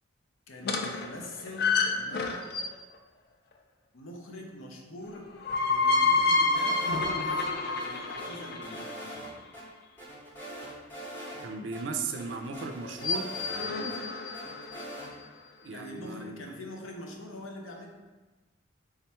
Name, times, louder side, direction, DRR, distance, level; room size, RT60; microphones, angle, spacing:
voice 1, 0.5-2.5 3.9-5.3 5.7-9.4 13.6-13.9 15.7-17.9, left 1 dB, 85° left, 1 dB, 0.6 m, -44 dB
sound 1, 0.6-2.9 5.1-9.2 12.8-15.0, left 3 dB, 50° left, 0.3 m, -29 dB
sound 2, 6.5-7.5 7.8-9.3 9.5-9.6 10.0-11.5 11.7-11.8 12.2-14.0 14.3-15.1, right 1 dB, 10° left, 0.7 m, -42 dB
voice 2, 11.4-13.3 15.6-16.4, right 4 dB, 65° right, 5 dB, 0.4 m, -36 dB
3.5 x 2.2 x 4.2 m, 1.2 s
head